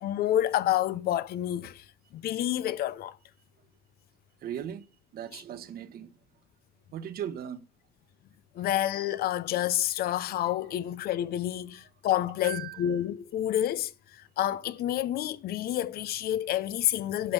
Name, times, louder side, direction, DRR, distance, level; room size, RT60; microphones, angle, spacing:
voice 1, 0.0-1.8 2.1-3.2 8.6-13.9 14.4-17.3, left 12 dB, 65° left, 0.7 m, -28 dB
voice 2, 4.4-4.9 5.1-6.1 6.9-7.6 8.6-8.7 11.8-11.9 12.4-13.0, right 10 dB, 65° right, 1.3 m, -38 dB
11.0 x 6.2 x 5.3 m
cardioid pair, 110°, 17 cm